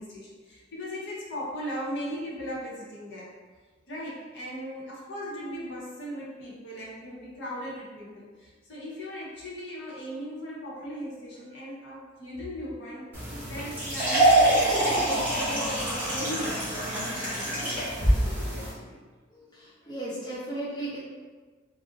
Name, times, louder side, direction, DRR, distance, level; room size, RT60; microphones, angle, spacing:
voice 1, 0.0-3.3 3.9-19.0, equal, 60° left, -6 dB, 0.7 m, -38 dB
sound 1, 13.1-18.7, right 1 dB, 10° right, 0.9 m, -25 dB
voice 2, 19.3-21.0, right 1 dB, 20° left, -8 dB, 0.6 m, -36 dB
2.4 x 2.0 x 3.7 m, 1.4 s
head